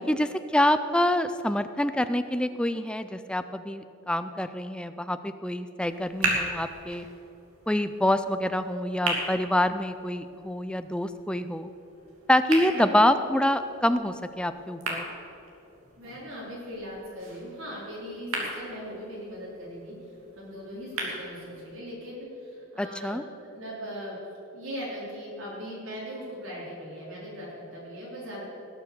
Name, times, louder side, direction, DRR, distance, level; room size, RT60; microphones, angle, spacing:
voice 1, 0.0-7.1 7.7-11.7 12.3-15.0 22.8-23.2, left 1 dB, 5° left, 11 dB, 0.4 m, -26 dB
sound 1, 5.8-21.8, right 2 dB, 80° right, 2.6 m, -37 dB
voice 2, 12.6-13.1 16.0-19.9 20.4-23.2 23.6-24.2 24.5-28.4, equal, 65° right, -6 dB, 3.6 m, -39 dB
19.0 x 7.0 x 6.7 m, 2.9 s
head